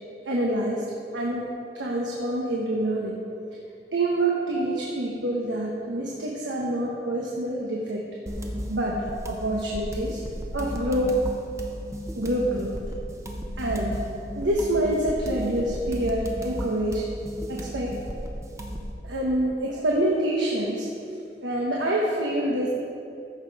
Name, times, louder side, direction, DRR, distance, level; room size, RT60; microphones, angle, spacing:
voice 1, 0.2-1.5 1.7-3.2 3.9-8.0 8.7-10.2 10.5-11.3 12.2-12.8 13.6-14.0 14.3-17.1 17.5-18.0 19.0-20.9 21.4-22.7, right 1 dB, 90° right, -3 dB, 1.2 m, -26 dB
sound 1, 8.3-18.9, equal, 15° right, 0.8 m, -35 dB
14.0 x 6.0 x 4.9 m, 2.6 s
head